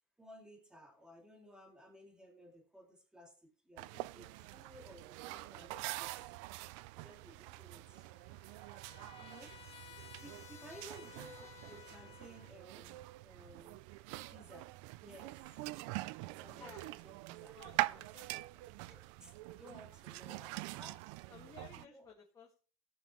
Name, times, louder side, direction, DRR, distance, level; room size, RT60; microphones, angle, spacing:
voice 1, 0.2-6.3 7.0-8.1 9.2-9.6 10.2-13.9 14.3-15.6 16.3-18.0 18.7-21.3 21.7-22.1, equal, 5° right, 3 dB, 2.2 m, -57 dB
sound 1, 3.8-21.9, right 19 dB, 90° right, 0.4 m, -44 dB
voice 2, 5.3-6.0 10.1-10.2 16.6-16.9 17.6-18.3 18.5-18.6 21.3-22.6, left 6 dB, 25° left, -3 dB, 1.8 m, -57 dB
Trumpet, 7.8-12.5, left 10 dB, 45° left, 1.5 m, -56 dB
18.5 x 6.1 x 3.1 m, 0.39 s
cardioid pair, 145°, 15 cm